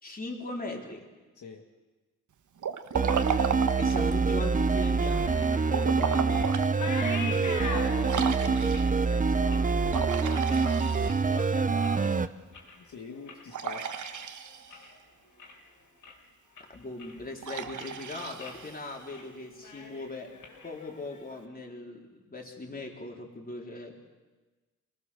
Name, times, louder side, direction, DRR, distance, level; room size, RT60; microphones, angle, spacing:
voice 1, 0.0-1.1 3.8-6.6 8.8-12.3 16.6-20.3 20.6-24.0, left 2 dB, 30° left, 0 dB, 3.7 m, -40 dB
Liquid, 2.6-4.2 5.6-6.7 7.2-7.3 8.1-9.0 9.9-11.5 13.5-14.9 17.4-19.1, right 7 dB, 70° right, 1.3 m, -34 dB
sound 1, 2.9-12.3, right 4 dB, 25° right, 0.7 m, -26 dB
sound 2, 4.7-11.4 11.7-12.2 12.5-15.0 15.3-15.7 16.0-16.1 16.6-17.4 17.6-18.0 18.4-18.6 18.9-19.3 19.5-21.4, left 3 dB, 90° left, 4.8 m, -43 dB
voice 2, 6.8-8.9 12.8-14.0, left 4 dB, 70° left, 1 dB, 1.9 m, -41 dB
26.5 x 19.0 x 6.9 m, 1.3 s
wide cardioid pair, 110°, 31 cm